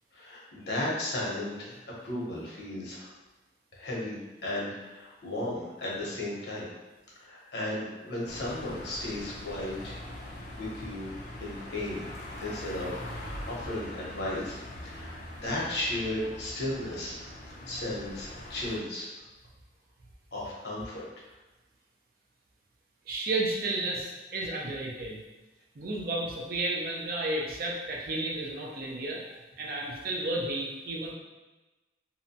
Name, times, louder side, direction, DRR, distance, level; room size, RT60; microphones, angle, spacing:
voice 1, 0.1-1.7 2.0-3.1 3.8-4.2 4.4-6.7 7.2-10.0 10.6-11.1 11.4-12.1 12.4-17.2 17.7-19.1 20.3-21.0, left 1 dB, 70° left, -5 dB, 0.8 m, -35 dB
sound 1, 8.2-18.8, left 1 dB, 40° left, 0.4 m, -42 dB
voice 2, 23.1-25.2 25.8-29.2 29.6-31.1, right 2 dB, 55° right, -2 dB, 0.5 m, -32 dB
2.7 x 2.1 x 2.7 m, 1.1 s
head